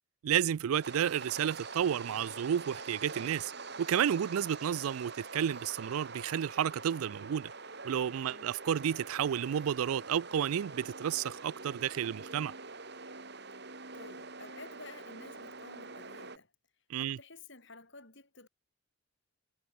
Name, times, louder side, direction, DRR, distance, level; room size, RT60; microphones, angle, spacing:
voice 1, 0.2-3.5 3.8-7.5 7.8-12.5 16.9-17.2, right 9 dB, 75° right, 0.3 m, -31 dB
sound 1, 0.8-16.4, right 4 dB, 50° right, 4.6 m, -45 dB
voice 2, 13.9-16.5 17.0-18.5, left 3 dB, 55° left, 7.0 m, -52 dB
head